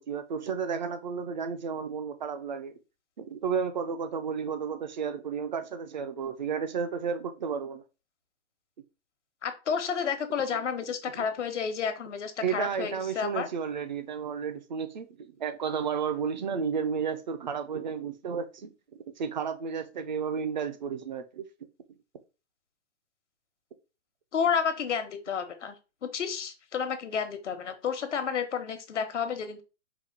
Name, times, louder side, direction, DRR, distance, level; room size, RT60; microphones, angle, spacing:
voice 1, 0.0-2.7 3.2-7.8 12.4-21.4, right 6 dB, 40° right, 0.5 m, -32 dB
voice 2, 9.4-13.5 24.3-25.8 26.0-29.6, left 7 dB, 80° left, 1.1 m, -31 dB
4.7 x 2.2 x 3.9 m
hypercardioid pair, 170°, 35 cm